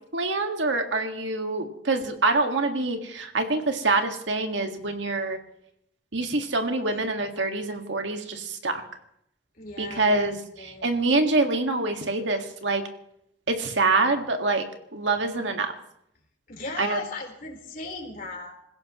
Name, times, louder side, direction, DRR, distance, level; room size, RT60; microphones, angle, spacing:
voice 1, 0.1-5.4 6.1-8.8 9.8-12.8 13.5-14.6 14.9-15.7 16.8-17.0, right 3 dB, 80° right, 5 dB, 1.9 m, -25 dB
voice 2, 9.6-10.3 10.6-10.9 16.5-18.5, left 3 dB, 50° left, 1 dB, 4.1 m, -36 dB
26.5 x 16.0 x 3.1 m, 0.75 s
head